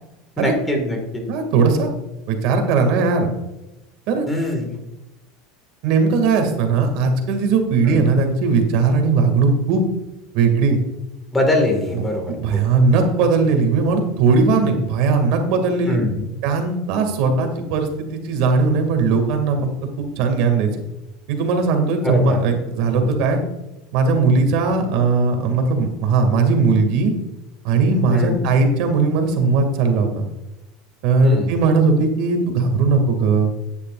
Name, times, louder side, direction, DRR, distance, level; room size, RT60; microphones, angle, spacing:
voice 1, 0.4-1.2 4.3-4.8 7.9-8.1 11.3-12.6 15.9-16.3 22.0-22.4 23.0-23.1 28.1-28.5 31.2-31.6, left 1 dB, 10° left, 3 dB, 1.9 m, -22 dB
voice 2, 1.3-1.9 2.3-3.3 4.1-4.3 5.8-9.9 10.3-10.8 11.9-16.0 16.4-19.7 20.0-20.8 21.3-23.4 23.9-27.1 27.6-30.3 31.0-33.5, right 4 dB, 60° right, 5 dB, 2.2 m, -18 dB
13.0 x 9.9 x 2.5 m, 0.99 s
supercardioid pair, 150°, 0 cm